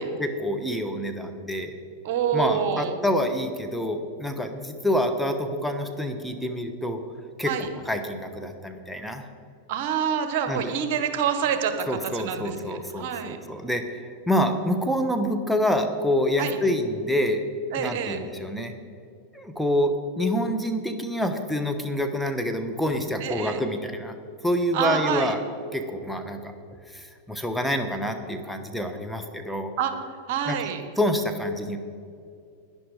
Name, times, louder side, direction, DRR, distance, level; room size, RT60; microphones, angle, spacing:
voice 1, 0.0-1.8 2.3-7.0 7.4-9.3 10.5-10.7 11.9-17.5 17.8-18.7 19.3-24.1 24.4-25.4 25.7-26.5 26.9-29.7 30.5-30.6 31.0-31.8, equal, ahead, 5 dB, 1.1 m, -27 dB
voice 2, 2.0-2.9 7.5-7.7 9.7-13.4 16.4-16.5 17.7-18.2 23.2-23.6 24.7-25.3 29.8-29.9 30.3-30.8, right 8 dB, 60° right, 8 dB, 1.3 m, -27 dB
11.5 x 10.5 x 4.9 m, 2.4 s
hypercardioid pair, 105°, 0 cm